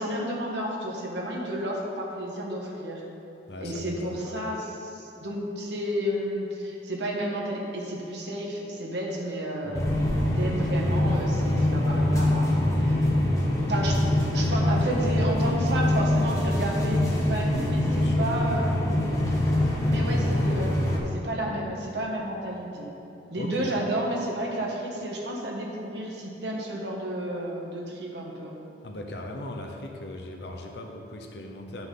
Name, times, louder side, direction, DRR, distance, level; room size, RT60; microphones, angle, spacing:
voice 1, 0.0-3.0 3.6-9.8 10.4-12.9 13.7-14.0 14.3-19.1 19.9-20.7 21.1-22.9 23.3-28.5, right 1 dB, 75° right, -2 dB, 1.4 m, -31 dB
voice 2, 3.5-4.4 9.6-10.0 17.8-18.3 20.1-20.2 23.4-23.8 28.8-31.9, left 1 dB, 70° left, 1 dB, 0.8 m, -39 dB
sound 1, 9.7-21.0, left 1 dB, 20° left, 1.3 m, -24 dB
12.0 x 5.9 x 3.8 m, 3.0 s
head